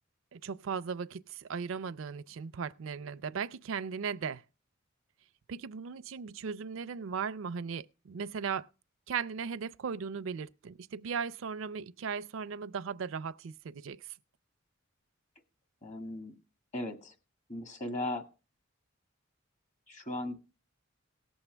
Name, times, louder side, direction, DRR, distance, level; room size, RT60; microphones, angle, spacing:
voice 1, 0.3-4.4 5.5-8.7 9.1-14.1, right 6 dB, 75° right, 0.4 m, -37 dB
voice 2, 15.8-16.4 16.7-17.1 17.5-18.2 19.9-20.4, left 1 dB, 35° left, 1.7 m, -37 dB
18.5 x 7.1 x 3.2 m
head